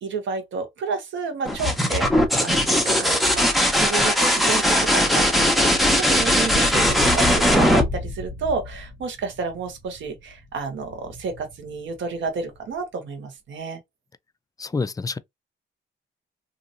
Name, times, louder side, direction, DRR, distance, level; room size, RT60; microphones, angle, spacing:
voice 1, 0.0-2.1 2.4-5.4 5.8-13.8, right 4 dB, 70° right, 1.2 m, -30 dB
sound 1, 1.5-9.0 10.8-11.4, equal, ahead, 0.9 m, -20 dB
voice 2, 14.6-15.2, left 4 dB, 20° left, 0.3 m, -27 dB
2.8 x 2.8 x 2.6 m
cardioid pair, 90°, 20 cm